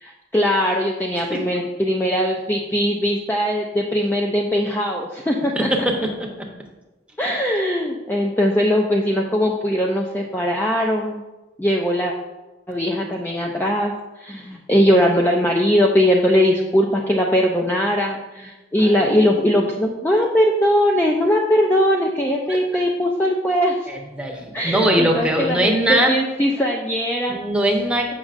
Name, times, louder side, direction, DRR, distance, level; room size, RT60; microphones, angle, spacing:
voice 1, 0.0-5.5 7.2-11.2 11.6-12.1 12.7-23.8 24.5-27.4, equal, 10° left, -1 dB, 0.4 m, -20 dB
voice 2, 18.8-19.3 23.9-26.1 27.3-28.1, right 1 dB, 5° right, 0 dB, 0.8 m, -21 dB
7.4 x 6.1 x 2.5 m, 1.1 s
head